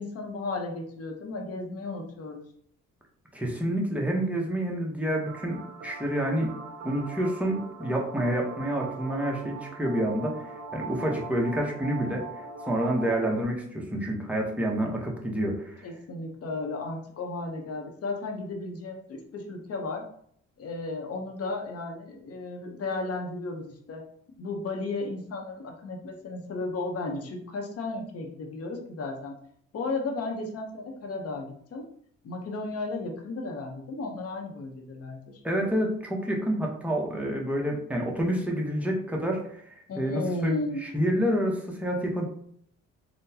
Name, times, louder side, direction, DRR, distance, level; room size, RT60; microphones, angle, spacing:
voice 1, 0.0-2.4 15.8-20.0 20.6-24.0 24.4-29.3 29.7-31.8 32.2-35.4 39.9-40.9, left 3 dB, 50° left, 2 dB, 0.8 m, -34 dB
voice 2, 3.3-6.5 6.8-10.4 10.7-12.2 12.7-15.9 35.4-42.2, right 1 dB, 5° right, -1 dB, 0.8 m, -28 dB
sound 1, 5.3-13.4, right 4 dB, 60° right, 0.6 m, -41 dB
3.8 x 2.2 x 2.7 m, 0.64 s
cardioid pair, 90°, 30 cm